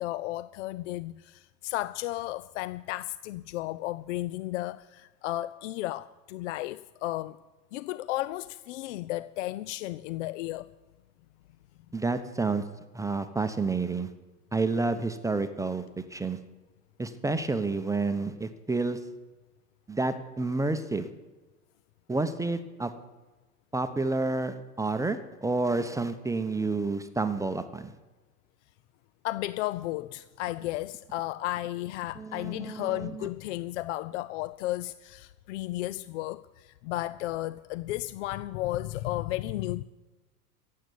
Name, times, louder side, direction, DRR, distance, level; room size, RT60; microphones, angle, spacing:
voice 1, 0.0-7.4 7.7-10.7 29.2-39.8, left 16 dB, 50° left, 0.5 m, -34 dB
voice 2, 11.9-12.6 12.9-14.1 14.5-15.8 16.1-16.4 17.0-19.0 19.9-21.1 22.1-22.9 23.7-27.9 32.2-33.3, right 3 dB, 5° right, 0.9 m, -29 dB
15.0 x 8.5 x 9.6 m
hypercardioid pair, 95°, 49 cm